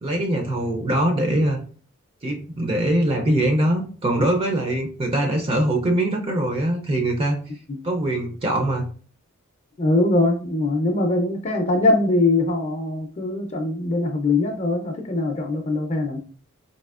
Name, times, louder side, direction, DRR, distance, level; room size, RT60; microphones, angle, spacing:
voice 1, 0.0-1.6 2.2-7.4 7.8-8.9, right 1 dB, 25° right, 2 dB, 0.4 m, -22 dB
voice 2, 9.8-16.2, left 2 dB, 30° left, 4 dB, 0.4 m, -22 dB
4.2 x 2.7 x 2.4 m, 0.42 s
head